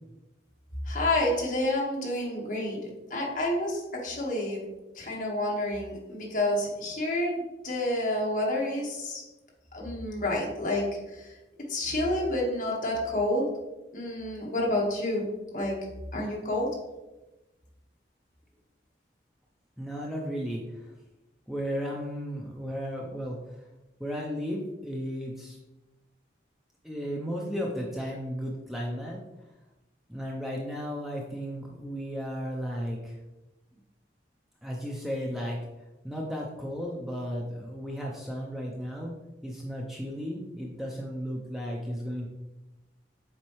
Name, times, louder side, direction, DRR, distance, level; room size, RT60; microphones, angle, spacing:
voice 1, 0.8-2.8 3.1-4.6 4.9-9.2 9.7-11.3 11.7-13.5 13.9-15.3 15.5-15.8 16.1-16.7, left 1 dB, 45° left, -3 dB, 1.5 m, -29 dB
voice 2, 19.8-20.6 21.5-23.4 24.0-25.6 26.8-29.2 30.1-33.2 34.6-35.6 36.0-39.2 39.4-42.3, equal, ahead, -2 dB, 0.6 m, -34 dB
7.2 x 4.4 x 3.1 m, 1.0 s
head